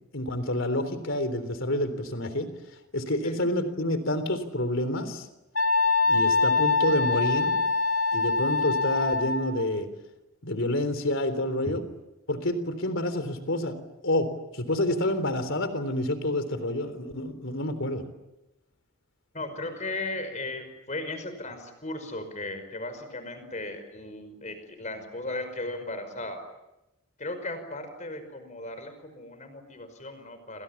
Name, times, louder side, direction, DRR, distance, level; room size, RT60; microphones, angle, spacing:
voice 1, 0.1-2.5 2.9-5.3 6.0-7.6 8.1-9.9 10.4-11.8 12.3-13.8 14.0-18.0, left 1 dB, 60° left, 11 dB, 3.6 m, -28 dB
Wind instrument woodwind instrument, 5.5-9.6, left 3 dB, 80° left, 1.9 m, -24 dB
voice 2, 19.3-26.4 27.2-30.6, left 2 dB, 35° left, 9 dB, 5.4 m, -36 dB
29.5 x 26.0 x 7.3 m, 0.95 s
head